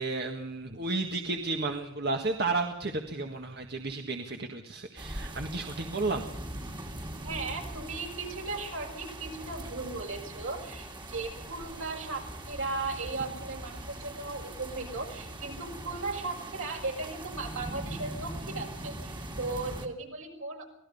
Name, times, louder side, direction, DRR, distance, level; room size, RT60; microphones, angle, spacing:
voice 1, 0.0-6.2, right 3 dB, 50° right, 4 dB, 1.7 m, -32 dB
sound 1, 5.0-19.9, right 1 dB, 20° right, 2.2 m, -41 dB
voice 2, 7.2-20.7, right 3 dB, 70° right, 2 dB, 6.1 m, -37 dB
25.5 x 18.5 x 5.5 m, 0.79 s
head